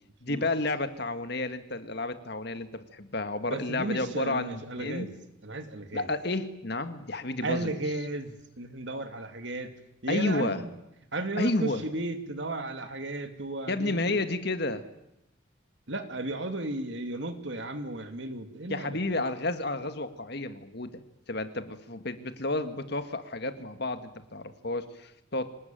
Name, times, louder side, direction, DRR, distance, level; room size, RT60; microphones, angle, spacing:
voice 1, 0.2-5.1 5.9-7.7 10.1-10.6 11.4-11.9 13.7-14.9 18.7-21.0 21.3-25.5, left 2 dB, 55° left, 9 dB, 1.8 m, -31 dB
voice 2, 3.5-5.1 5.4-6.1 7.4-9.7 10.0-10.7 11.1-14.0 15.9-19.0, right 2 dB, 65° right, 7 dB, 2.5 m, -34 dB
25.5 x 20.0 x 9.1 m, 0.84 s
head